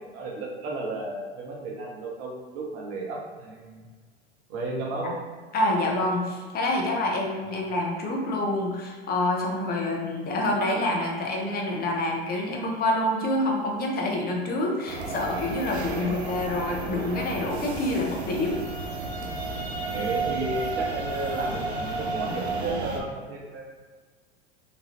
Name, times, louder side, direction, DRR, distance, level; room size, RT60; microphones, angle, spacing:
voice 1, 0.0-3.9 4.5-5.1 15.9-16.3 19.9-23.6, right 2 dB, 45° right, -2 dB, 0.8 m, -33 dB
voice 2, 5.5-18.6, left 1 dB, 30° left, 0 dB, 0.7 m, -27 dB
sound 1, 14.9-23.0, right 3 dB, 90° right, 0.5 m, -32 dB
3.0 x 2.3 x 2.9 m, 1.5 s
hypercardioid pair, 85°, 32 cm